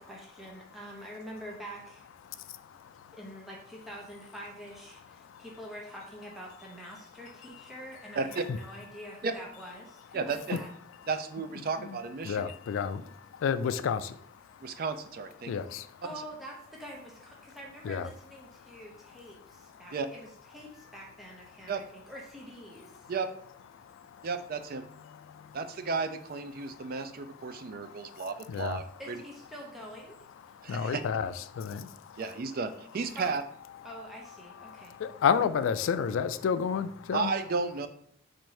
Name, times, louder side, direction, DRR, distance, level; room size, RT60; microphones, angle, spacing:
voice 1, 0.0-2.0 3.2-10.7 16.0-23.1 29.0-30.2 33.2-33.4 33.8-34.9, equal, ahead, -3 dB, 0.6 m, -46 dB
voice 2, 2.3-3.2 5.2-5.5 7.5-7.6 8.5-8.6 11.8-12.0 12.2-14.8 15.4-16.0 17.8-18.1 18.6-18.8 19.4-19.9 22.9-23.1 23.7-24.3 25.1-25.6 26.6-27.1 27.4-28.8 30.4-32.2 33.8-34.0 34.5-37.3, left 7 dB, 65° left, 12 dB, 0.3 m, -33 dB
voice 3, 10.1-10.6 11.1-12.4 14.6-15.5 19.9-20.1 21.7-21.8 23.1-23.3 24.2-24.9 25.5-29.2 30.6-31.0 32.2-33.4 37.1-37.9, right 4 dB, 45° right, 9 dB, 0.4 m, -33 dB
4.3 x 2.6 x 4.7 m, 0.63 s
head